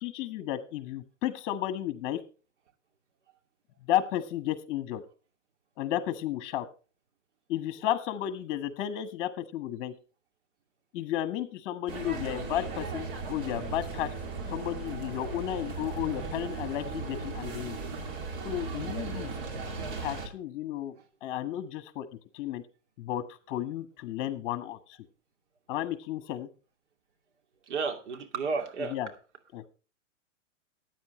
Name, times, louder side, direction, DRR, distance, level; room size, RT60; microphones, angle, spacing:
voice 1, 0.0-2.2 3.9-5.0 5.8-6.7 7.5-9.9 10.9-14.1 14.5-17.8 18.4-19.3 20.0-20.9 21.2-22.1 22.3-22.6 23.0-25.0 25.7-26.5 28.9-29.1 29.5-29.6, left 12 dB, 40° left, 11 dB, 1.6 m, -33 dB
sound 1, 11.9-20.3, right 4 dB, 45° right, 2.9 m, -37 dB
voice 2, 27.7-29.0, right 4 dB, 60° right, 5 dB, 2.6 m, -32 dB
15.0 x 9.5 x 3.2 m, 0.34 s
hypercardioid pair, 130°, 39 cm